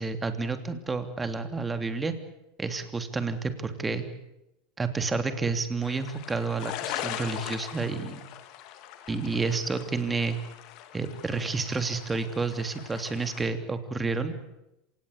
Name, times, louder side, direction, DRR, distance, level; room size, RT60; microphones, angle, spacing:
voice 1, 0.0-2.1 2.6-4.1 4.8-8.2 9.1-10.4 10.9-14.3, right 4 dB, 20° right, 8 dB, 3.1 m, -30 dB
sound 1, 5.8-13.5, left 11 dB, 60° left, 2.7 m, -40 dB
26.5 x 18.5 x 8.3 m, 0.88 s
hypercardioid pair, 90°, 0 cm